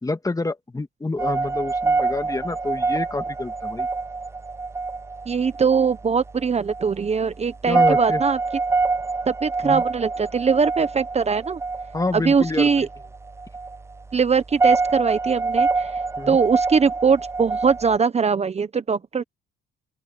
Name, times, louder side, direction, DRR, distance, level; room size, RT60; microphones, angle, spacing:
voice 1, 0.0-3.9 7.7-8.2 9.6-9.8 11.9-12.9 16.2-16.4, left 2 dB, 15° left, 1.8 m, -28 dB
sound 1, 1.2-18.0, right 4 dB, 15° right, 0.4 m, -26 dB
voice 2, 5.3-8.4 9.3-11.6 12.1-12.9 14.1-16.0 16.3-19.2, right 5 dB, 35° right, 1.0 m, -21 dB
open air
cardioid pair, 90°, 20 cm